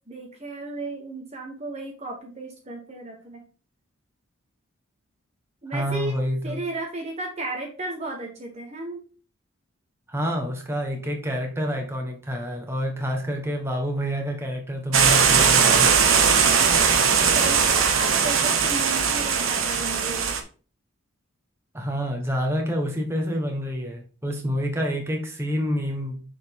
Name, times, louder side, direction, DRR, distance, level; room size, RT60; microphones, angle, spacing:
voice 1, 0.1-3.4 5.6-9.0 17.3-20.3, right 2 dB, 30° right, 1.1 m, -34 dB
voice 2, 5.7-6.6 10.1-15.9 21.7-26.2, equal, 10° right, 1.3 m, -28 dB
sound 1, 14.9-20.4, right 6 dB, 75° right, 1.1 m, -19 dB
6.6 x 5.1 x 3.6 m
head